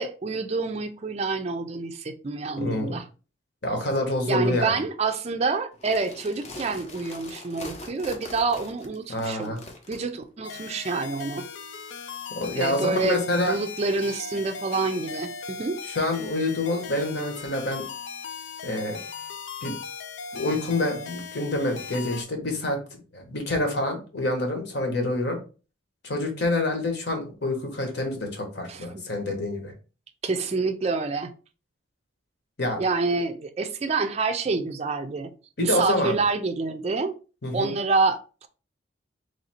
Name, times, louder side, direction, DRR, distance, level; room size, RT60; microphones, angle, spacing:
voice 1, 0.0-3.0 4.3-9.5 9.9-11.4 12.5-13.2 13.5-15.8 28.7-28.9 30.2-31.3 32.8-35.3 35.6-37.1 37.5-38.5, right 4 dB, 35° right, 0.4 m, -27 dB
voice 2, 2.6-3.0 3.6-4.8 9.1-9.6 12.4-13.6 15.8-17.9 18.6-19.0 19.6-19.8 20.3-25.4 26.0-29.7 32.6-32.8 35.6-36.2 37.4-37.7, left 1 dB, 60° left, 1.1 m, -27 dB
sound 1, 5.7-10.0, left 2 dB, 35° left, 0.7 m, -42 dB
sound 2, 10.4-22.2, left 5 dB, 80° left, 0.5 m, -38 dB
3.2 x 2.6 x 4.2 m
head